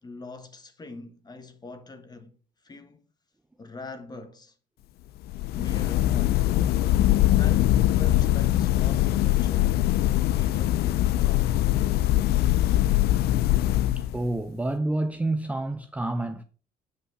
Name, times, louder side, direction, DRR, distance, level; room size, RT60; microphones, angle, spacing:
voice 1, 0.0-2.4 2.6-3.0 3.6-4.6 5.5-6.4 7.4-11.6, left 3 dB, 25° left, 1.4 m, -43 dB
sound 1, 5.2-14.4, left 14 dB, 70° left, 0.4 m, -22 dB
voice 2, 14.0-16.4, right 2 dB, 10° right, 0.5 m, -28 dB
8.2 x 5.6 x 5.4 m
cardioid pair, 110°, 17 cm